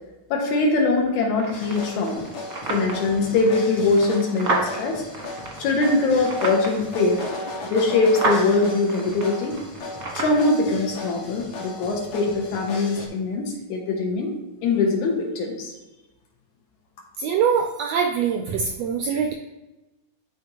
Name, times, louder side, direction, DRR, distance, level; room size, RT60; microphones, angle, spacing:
voice 1, 0.3-2.3 2.7-5.0 5.6-7.3 7.6-9.6 10.1-14.3 14.6-15.7, left 3 dB, 75° left, 0 dB, 2.5 m, -22 dB
sound 1, 1.3-10.4, right 2 dB, 55° right, 1.0 m, -32 dB
sound 2, 1.5-13.1, left 2 dB, 55° left, 1.6 m, -36 dB
voice 2, 17.2-19.3, right 6 dB, 80° right, 3 dB, 1.5 m, -23 dB
11.0 x 4.1 x 2.9 m, 1.1 s
omnidirectional pair, 3.4 m